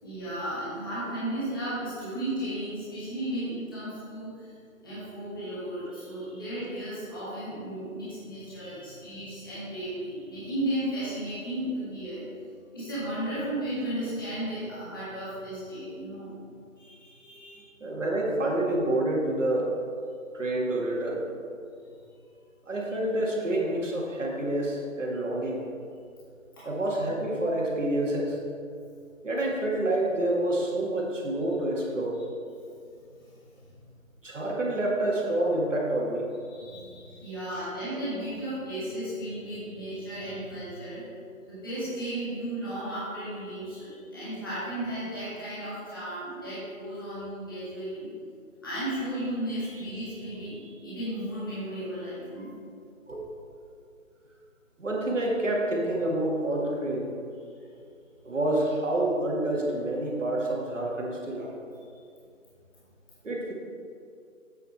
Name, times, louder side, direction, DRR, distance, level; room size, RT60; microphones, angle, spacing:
voice 1, 0.0-4.6 4.8-12.3 12.7-16.4 16.8-17.7 26.5-26.6 32.1-32.2 32.9-33.3 33.6-33.7 36.5-41.0 41.5-48.1 48.6-52.5 57.6-57.7 61.8-61.9, right 1 dB, 15° left, -13 dB, 1.7 m, -34 dB
voice 2, 17.8-19.7 20.3-21.3 22.7-25.6 26.6-28.4 29.2-32.2 34.2-36.3 53.1-53.2 54.8-57.1 58.2-61.5 63.2-63.5, right 1 dB, 65° right, -2 dB, 1.9 m, -28 dB
8.0 x 7.4 x 4.2 m, 2.4 s
figure-of-eight pair, 175°, 41 cm